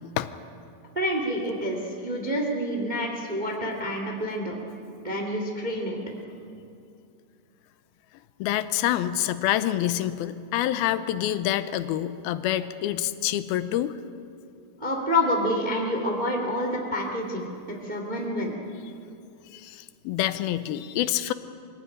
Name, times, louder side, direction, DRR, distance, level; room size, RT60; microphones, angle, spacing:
voice 1, 1.0-4.6 5.0-6.0 14.8-18.7, left 1 dB, 15° right, 1 dB, 1.8 m, -28 dB
voice 2, 8.4-13.9 19.5-21.3, left 12 dB, 80° left, 12 dB, 2.5 m, -27 dB
23.5 x 16.0 x 10.0 m, 2.6 s
omnidirectional pair, 4.5 m